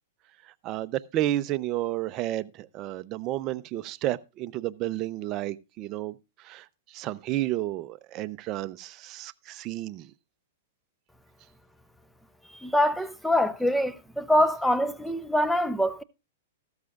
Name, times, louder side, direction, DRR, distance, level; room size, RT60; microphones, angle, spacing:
voice 1, 0.6-6.2 6.4-6.6 6.9-10.1, right 14 dB, 35° right, 0.6 m, -31 dB
voice 2, 12.6-16.0, left 1 dB, ahead, 0.7 m, -24 dB
14.0 x 13.0 x 2.4 m
hypercardioid pair, 135°, 0 cm